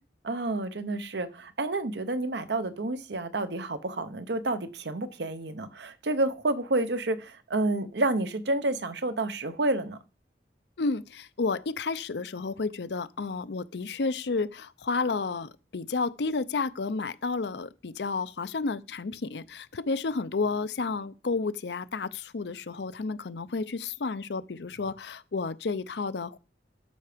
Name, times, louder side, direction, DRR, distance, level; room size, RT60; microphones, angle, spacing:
voice 1, 0.2-10.0, right 2 dB, 75° right, 0.8 m, -29 dB
voice 2, 10.8-26.4, left 4 dB, 75° left, 0.6 m, -31 dB
12.5 x 5.8 x 5.0 m
head